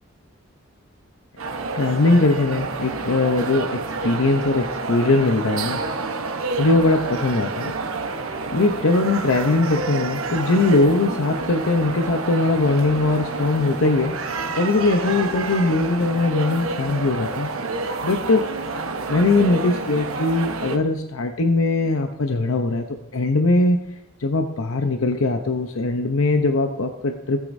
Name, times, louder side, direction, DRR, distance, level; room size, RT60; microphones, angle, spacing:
sound 1, 1.4-20.8, right 3 dB, 80° right, 1.0 m, -29 dB
voice 1, 1.7-3.7 4.0-5.8 6.6-7.7 8.5-14.1 14.6-17.5 18.0-18.4 19.1-22.8 23.1-23.8 24.2-27.4, left 2 dB, 80° left, 5 dB, 0.8 m, -20 dB
17.0 x 8.4 x 2.7 m, 0.83 s
head